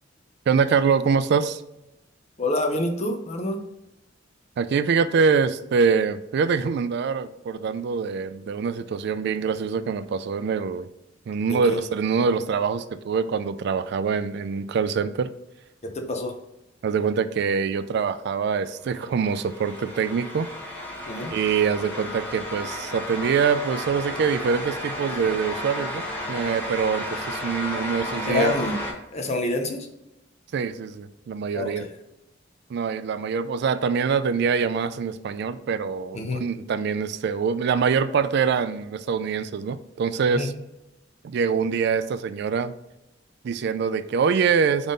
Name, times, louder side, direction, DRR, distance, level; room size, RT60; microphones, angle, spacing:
voice 1, 0.5-1.6 4.6-10.9 11.3-15.3 16.8-20.5 21.3-28.5 30.5-31.8 32.7-40.5 41.2-42.7 43.4-44.9, right 6 dB, 60° right, 12 dB, 0.3 m, -24 dB
voice 2, 2.4-3.6 11.5-11.8 15.8-16.4 21.1-21.3 28.2-28.8 29.1-29.9 31.5-31.9 36.1-36.4 40.3-40.5, left 2 dB, 35° left, 4 dB, 0.7 m, -27 dB
sound 1, 18.8-28.9, left 1 dB, 10° left, 1.0 m, -33 dB
4.0 x 3.6 x 3.7 m, 0.91 s
head